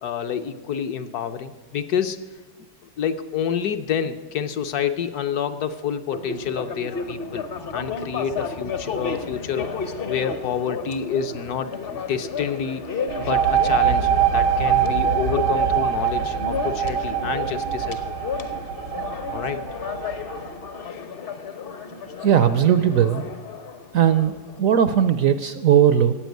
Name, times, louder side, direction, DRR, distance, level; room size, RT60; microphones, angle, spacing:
voice 1, 0.0-2.2 3.0-7.4 7.7-11.7 12.1-18.0 19.3-19.6, left 7 dB, 65° left, 9 dB, 1.2 m, -28 dB
sound 1, 6.1-24.6, left 5 dB, 45° left, 0.8 m, -32 dB
sound 2, 13.1-20.5, right 9 dB, 85° right, 1.6 m, -23 dB
voice 2, 22.2-23.2 23.9-26.2, right 9 dB, 65° right, 12 dB, 0.9 m, -18 dB
14.5 x 8.6 x 9.2 m, 1.3 s
omnidirectional pair, 1.9 m